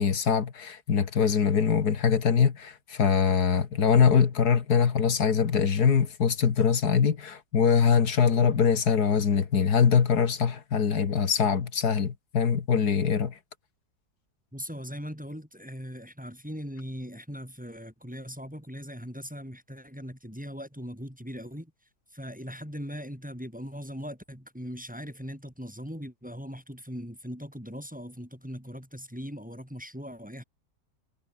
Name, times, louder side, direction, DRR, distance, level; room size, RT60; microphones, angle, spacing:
voice 1, 0.0-13.3, left 6 dB, 70° left, 2.2 m, -23 dB
voice 2, 14.5-21.7 22.1-30.4, equal, 5° right, 5.2 m, -40 dB
omnidirectional pair, 1.7 m